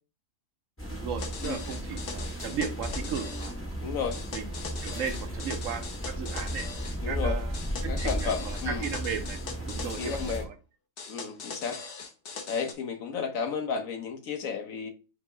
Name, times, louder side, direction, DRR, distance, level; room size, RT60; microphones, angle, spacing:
sound 1, 0.8-10.5, equal, 10° left, 0.9 m, -35 dB
voice 1, 0.9-3.6 4.3-4.5 4.8-6.7 7.1-9.4 9.7-10.5, right 7 dB, 70° right, 1.1 m, -36 dB
sound 2, 1.2-3.5 4.1-7.0 7.5-10.4 11.0-12.7, left 5 dB, 55° left, 0.8 m, -41 dB
voice 2, 3.8-4.2 7.0-7.4 7.8-8.9 9.8-10.5 11.1-11.8 12.5-14.9, left 6 dB, 80° left, 1.3 m, -33 dB
5.6 x 2.1 x 4.5 m
omnidirectional pair, 1.4 m